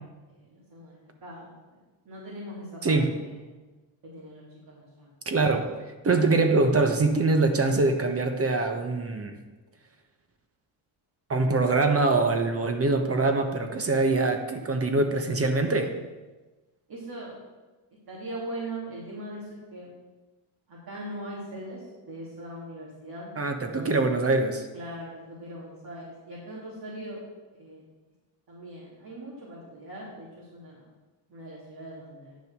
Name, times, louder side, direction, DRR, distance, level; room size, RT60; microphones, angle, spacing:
voice 1, 0.3-3.6 4.0-5.1 16.9-17.3 18.1-19.9 20.7-24.2 24.7-27.2 27.5-27.8 28.5-30.8 31.3-32.4, right 1 dB, 45° right, -6 dB, 3.2 m, -41 dB
voice 2, 5.3-5.7 6.0-9.3 11.3-15.9 23.4-24.7, right 3 dB, 30° right, 6 dB, 1.2 m, -23 dB
10.0 x 6.6 x 6.0 m, 1.2 s
cardioid pair, 110°, 48 cm